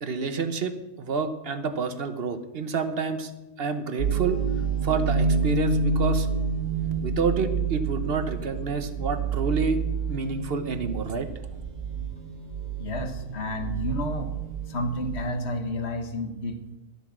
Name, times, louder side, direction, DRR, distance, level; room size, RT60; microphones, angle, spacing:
voice 1, 0.0-3.3 3.6-4.4 4.8-6.3 7.0-9.8 10.1-11.3, right 4 dB, 50° right, 9 dB, 1.1 m, -28 dB
sound 1, 4.0-15.2, right 5 dB, 30° right, 1.4 m, -28 dB
voice 2, 12.8-14.3 14.7-16.8, left 1 dB, 55° left, 6 dB, 1.5 m, -31 dB
13.0 x 8.0 x 6.1 m, 1.0 s
omnidirectional pair, 1.4 m